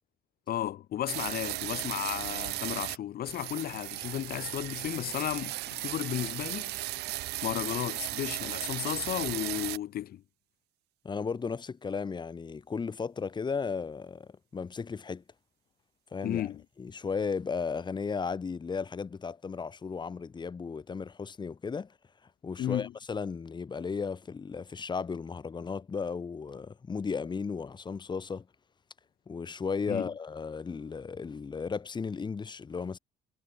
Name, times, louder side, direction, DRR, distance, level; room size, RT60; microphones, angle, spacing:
voice 1, 0.5-6.7 7.4-10.2 16.2-16.6 22.6-22.9 29.9-30.1, left 12 dB, 65° left, 4.7 m, -34 dB
sound 1, 1.1-3.0 3.2-9.8, right 18 dB, 80° right, 1.0 m, -36 dB
voice 2, 11.0-15.2 16.1-16.5 16.8-21.9 22.4-28.5 29.3-33.0, left 5 dB, 25° left, 1.7 m, -35 dB
cardioid pair, 110°, 17 cm